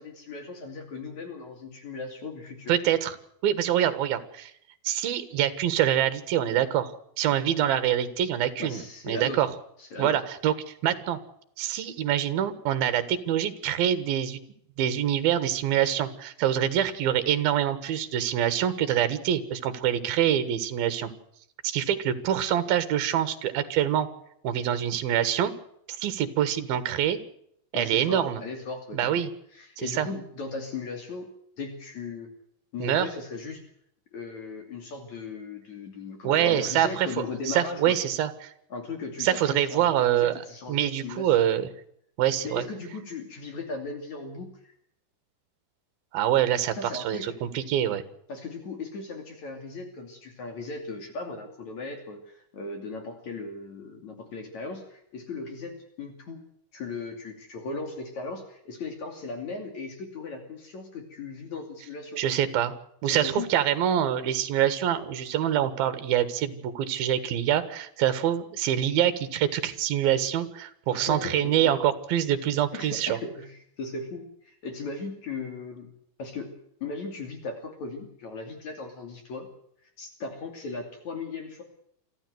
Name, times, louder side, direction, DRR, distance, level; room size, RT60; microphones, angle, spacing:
voice 1, 0.0-2.8 8.6-9.4 9.8-10.2 27.7-29.1 29.5-31.3 31.6-32.3 32.7-33.6 34.1-38.0 38.7-41.5 42.4-44.7 46.7-47.3 48.3-56.4 56.7-62.2 63.0-63.5 70.9-71.7 72.7-75.9 76.2-76.5 76.8-79.5 80.0-81.6, left 3 dB, 50° left, 5 dB, 3.8 m, -37 dB
voice 2, 2.7-3.2 3.4-4.5 4.8-9.5 10.0-11.2 11.6-14.4 14.8-21.1 21.6-24.1 24.4-25.5 25.9-27.2 27.7-28.4 28.9-29.3 29.8-30.1 32.8-33.1 36.2-38.5 39.2-40.3 40.7-41.7 42.2-42.6 46.1-48.0 62.2-62.7 63.0-73.2, right 10 dB, 75° right, 12 dB, 3.3 m, -25 dB
24.5 x 14.5 x 7.9 m, 0.71 s
omnidirectional pair, 4.5 m